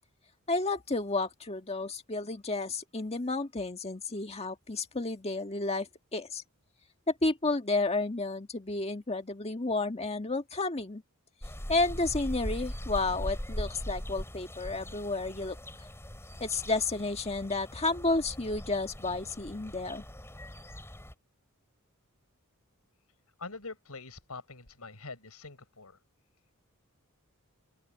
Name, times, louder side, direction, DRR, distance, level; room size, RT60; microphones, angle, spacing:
voice 1, 0.5-6.4 7.2-11.0 11.7-15.6 16.4-20.0, left 3 dB, 30° left, 1.7 m, -31 dB
sound 1, 11.4-21.1, equal, 10° left, 3.6 m, -40 dB
voice 2, 23.4-26.0, left 3 dB, 85° left, 5.5 m, -44 dB
open air
head